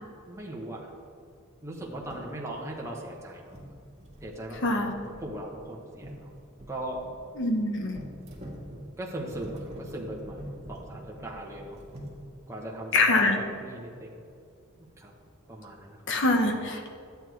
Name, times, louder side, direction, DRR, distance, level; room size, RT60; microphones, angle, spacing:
voice 1, 0.3-0.9 1.6-3.6 4.2-4.8 5.2-7.0 9.0-11.8 12.5-14.2 14.8-15.1 15.5-16.1, right 1 dB, 15° right, -3 dB, 1.2 m, -39 dB
sound 1, 1.8-2.3 2.7-3.2 3.5-7.2 7.9-12.1, equal, 30° right, 1.8 m, -45 dB
voice 2, 4.6-4.9 7.4-8.0 12.9-13.4 16.1-16.9, left 2 dB, 60° left, 4 dB, 1.1 m, -24 dB
11.5 x 8.2 x 4.7 m, 2.3 s
head